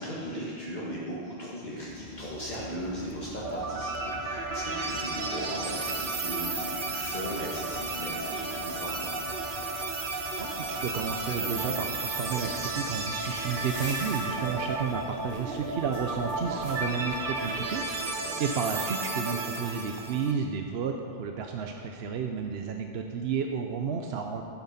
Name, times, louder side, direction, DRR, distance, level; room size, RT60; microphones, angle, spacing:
voice 1, 0.0-9.1 18.0-18.3, equal, 45° left, -7 dB, 1.7 m, -37 dB
Rain, 1.6-18.9, left 4 dB, 60° left, 0.9 m, -48 dB
sound 1, 3.4-20.3, right 3 dB, 55° right, 1.1 m, -33 dB
sound 2, 10.0-17.8, left 1 dB, 80° left, 2.4 m, -47 dB
voice 2, 10.4-24.4, right 6 dB, 75° right, 4 dB, 0.9 m, -32 dB
12.0 x 8.7 x 5.7 m, 2.5 s
omnidirectional pair, 1.1 m